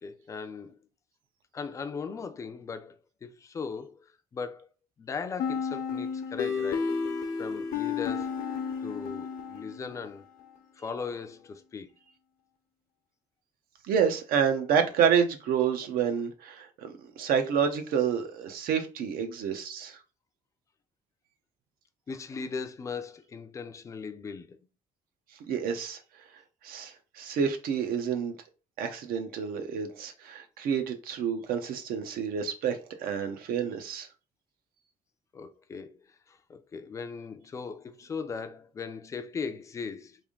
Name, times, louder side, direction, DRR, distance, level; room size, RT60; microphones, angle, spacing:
voice 1, 0.0-0.8 1.5-4.0 4.3-4.7 5.0-7.0 7.4-8.4 8.8-10.2 10.8-11.9 22.1-24.6 35.3-36.0 36.3-40.2, left 5 dB, 20° left, 0.3 m, -38 dB
sound 1, 5.4-10.1, left 6 dB, 85° left, 0.8 m, -32 dB
voice 2, 13.8-20.0 25.5-26.0 26.6-28.3 28.8-34.1, right 7 dB, 85° right, 0.8 m, -28 dB
3.4 x 2.6 x 3.6 m
cardioid pair, 180°, 15 cm